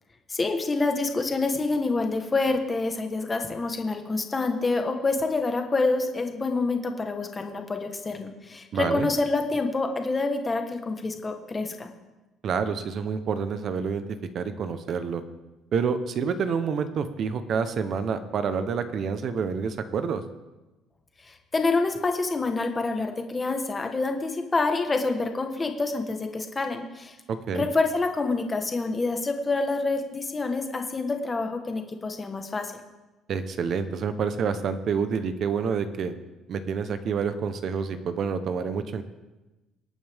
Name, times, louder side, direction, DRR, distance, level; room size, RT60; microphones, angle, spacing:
voice 1, 0.3-11.9 21.2-27.1 27.5-32.7, left 3 dB, 15° left, 5 dB, 1.2 m, -27 dB
voice 2, 8.7-9.1 12.4-14.0 14.3-15.2 15.7-20.2 27.3-27.7 33.3-36.1 36.5-39.0, right 6 dB, 45° right, 10 dB, 0.8 m, -28 dB
25.0 x 9.0 x 3.5 m, 1.1 s
cardioid pair, 165°, 0 cm